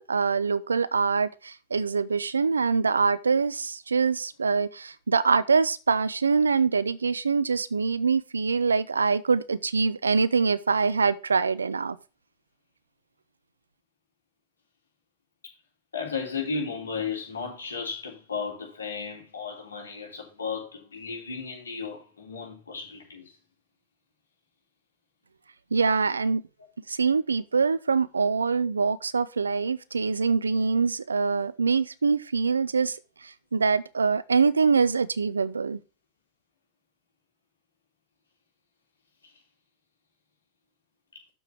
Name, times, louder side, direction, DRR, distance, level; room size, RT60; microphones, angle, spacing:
voice 1, 0.0-12.0 25.7-26.4 26.9-35.8, right 5 dB, 90° right, 0.5 m, -24 dB
voice 2, 15.9-23.3 39.2-39.3, left 5 dB, 85° left, 3.5 m, -34 dB
7.1 x 5.8 x 5.8 m
hypercardioid pair, 95°, 0 cm